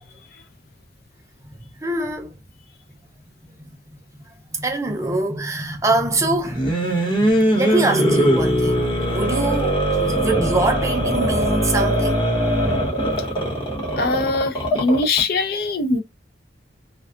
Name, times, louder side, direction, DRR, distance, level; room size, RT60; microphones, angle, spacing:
voice 1, 1.6-2.4 3.6-3.7 4.5-12.3, right 2 dB, 15° right, 0.5 m, -24 dB
sound 1, 6.4-15.2, equal, 25° left, 1.0 m, -21 dB
voice 2, 14.0-16.0, left 3 dB, 55° left, 0.5 m, -21 dB
2.5 x 2.3 x 2.4 m
head